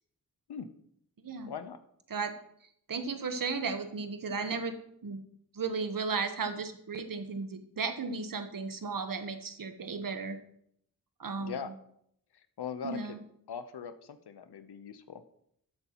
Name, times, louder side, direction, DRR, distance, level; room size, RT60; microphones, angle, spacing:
voice 1, 1.4-1.8 11.4-11.7 12.3-13.2 13.5-15.2, left 7 dB, 75° left, 11 dB, 0.8 m, -41 dB
voice 2, 2.9-4.8 5.0-5.2 5.5-10.4 11.2-11.6 12.8-13.2, right 4 dB, 55° right, 8 dB, 1.1 m, -35 dB
12.5 x 7.9 x 3.0 m, 0.71 s
cardioid pair, 50°, 39 cm